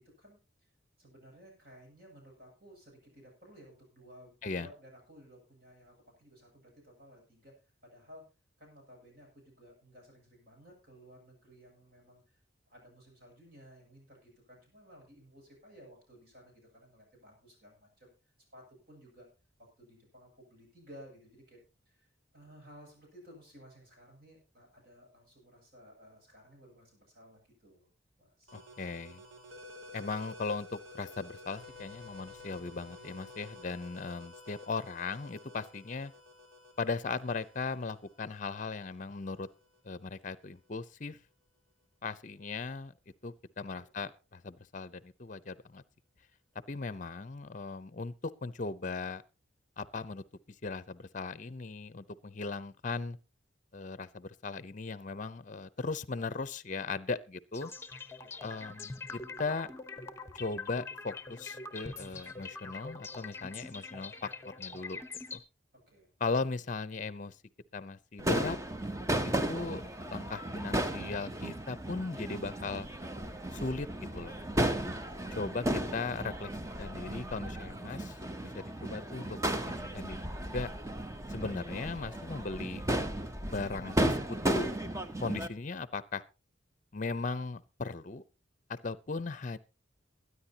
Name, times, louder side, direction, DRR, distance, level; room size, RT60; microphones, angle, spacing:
voice 1, 0.2-0.7 1.0-8.2 8.6-12.4 12.7-18.1 18.5-19.3 19.6-21.6 21.9-27.9 28.2-28.6 43.7-43.9 58.2-58.3 65.7-66.1 81.4-81.6, equal, 50° right, 7.5 m, -56 dB
voice 2, 28.5-29.2 29.9-36.1 36.8-39.5 39.8-41.2 42.0-42.9 43.2-45.8 46.7-49.2 49.8-50.2 50.6-53.2 53.7-57.7 58.4-59.7 60.3-65.0 65.3-65.4 66.2-67.4 67.7-68.6 69.2-72.9 73.5-73.9 74.1-74.4 75.3-80.2 80.5-80.7 81.3-82.8 83.4-84.7 85.2-86.2 86.9-88.2 88.7-89.6, left 4 dB, 40° left, 0.6 m, -38 dB
sound 1, 28.5-39.9, left 2 dB, 85° right, 3.5 m, -52 dB
sound 2, 57.5-65.4, left 4 dB, 15° left, 1.0 m, -44 dB
Crowd / Fireworks, 68.2-85.5, right 1 dB, 15° right, 0.8 m, -34 dB
23.0 x 9.7 x 2.8 m
head